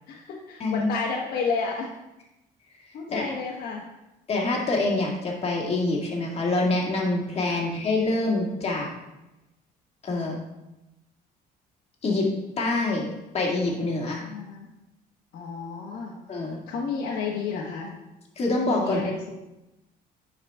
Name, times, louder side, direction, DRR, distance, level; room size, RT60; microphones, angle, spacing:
voice 1, 0.1-1.9 2.9-3.8 7.5-7.6 14.2-14.7 15.3-16.1 16.7-17.9 18.8-19.3, left 5 dB, 65° left, -5 dB, 1.4 m, -31 dB
voice 2, 4.3-8.9 10.0-10.4 12.0-12.3 12.6-14.3 16.3-16.6 18.4-19.1, left 2 dB, 35° left, -1 dB, 2.1 m, -26 dB
9.8 x 5.1 x 3.6 m, 0.96 s
cardioid pair, 110°, 17 cm